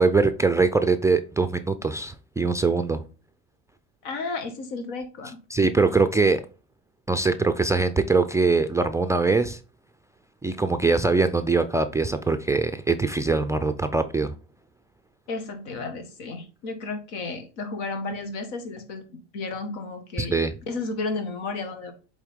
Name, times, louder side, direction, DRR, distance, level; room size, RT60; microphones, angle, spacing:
voice 1, 0.0-3.0 5.5-6.4 7.1-9.6 10.4-14.4 20.2-20.5, right 3 dB, 10° right, 8 dB, 0.3 m, -22 dB
voice 2, 4.0-5.4 15.3-19.1 19.3-20.4 20.7-21.9, left 3 dB, 80° left, 7 dB, 1.7 m, -33 dB
8.3 x 3.7 x 3.6 m, 0.34 s
supercardioid pair, 100°, 35 cm